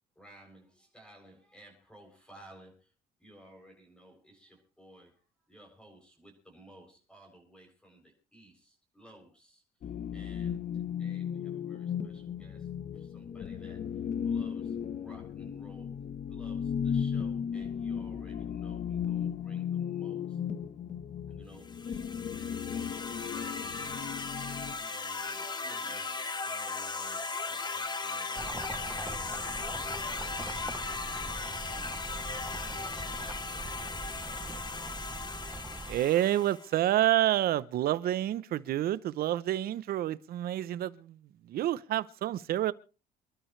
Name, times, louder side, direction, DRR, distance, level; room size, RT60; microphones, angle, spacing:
voice 1, 0.2-2.9 3.2-15.9 16.3-20.4 21.3-22.0 22.3-26.1 26.4-30.8 31.1-31.5 31.7-35.0, right 1 dB, 5° left, 7.8 m, -57 dB
sound 1, 9.8-24.7, left 8 dB, 50° left, 1.3 m, -35 dB
sound 2, 21.6-36.7, left 4 dB, 25° left, 1.8 m, -37 dB
sound 3, 28.3-36.0, right 2 dB, 15° right, 0.9 m, -42 dB
voice 2, 35.9-41.2 41.4-42.7, right 13 dB, 65° right, 0.9 m, -28 dB
27.5 x 12.5 x 3.3 m
cardioid pair, 110°, 17 cm